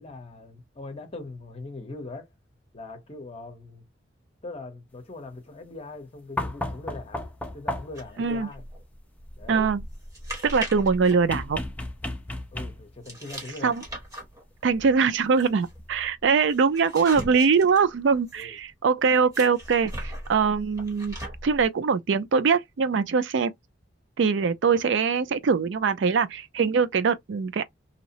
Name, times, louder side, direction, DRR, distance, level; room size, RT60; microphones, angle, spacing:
voice 1, 0.0-2.3 2.7-3.8 4.4-7.3 7.5-8.6 9.4-9.7 12.5-13.9 18.3-18.6, left 2 dB, 30° left, 0.8 m, -41 dB
sound 1, 6.4-8.1 11.3-13.0 14.6-14.7, left 1 dB, 10° left, 0.4 m, -33 dB
sound 2, 8.0-12.1 13.1-18.6 19.3-21.7, right 1 dB, 15° right, 1.0 m, -39 dB
voice 2, 9.5-9.8 10.4-11.6 13.6-13.8 14.6-21.2 21.4-23.5 24.2-27.6, right 5 dB, 70° right, 0.4 m, -22 dB
2.8 x 2.0 x 2.7 m
head